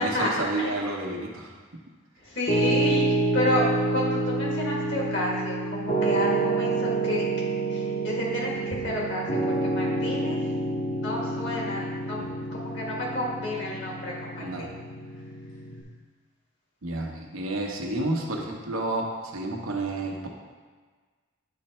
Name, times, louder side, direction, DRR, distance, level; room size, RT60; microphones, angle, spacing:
voice 1, 0.0-1.5 12.2-12.3 14.4-14.7 16.8-20.3, right 2 dB, 90° right, 0 dB, 1.0 m, -30 dB
voice 2, 2.2-7.2 7.7-10.4 10.9-14.8, left 1 dB, 60° left, -4 dB, 1.7 m, -30 dB
Piano, 2.5-15.8, right 2 dB, 40° left, 0.9 m, -28 dB
9.7 x 3.3 x 4.3 m, 1.5 s
head